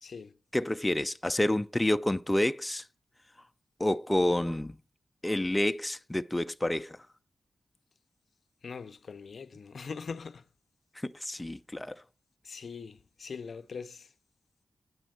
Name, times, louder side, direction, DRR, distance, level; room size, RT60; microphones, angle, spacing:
voice 1, 0.0-0.4 8.6-10.4 12.4-14.1, left 5 dB, 70° left, 0.5 m, -42 dB
voice 2, 0.5-2.9 3.8-4.8 5.2-7.0 10.9-12.0, left 1 dB, 15° left, 0.5 m, -29 dB
9.3 x 6.1 x 7.6 m
cardioid pair, 55°, 0 cm